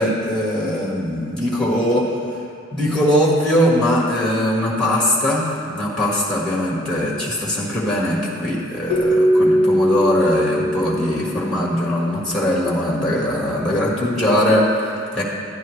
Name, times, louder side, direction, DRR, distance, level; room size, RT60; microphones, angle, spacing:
voice 1, 0.0-2.1 2.7-15.2, equal, 5° left, -5 dB, 1.5 m, -20 dB
Keyboard (musical), 8.9-11.7, equal, 30° right, 1.0 m, -19 dB
11.5 x 9.2 x 3.2 m, 2.4 s
head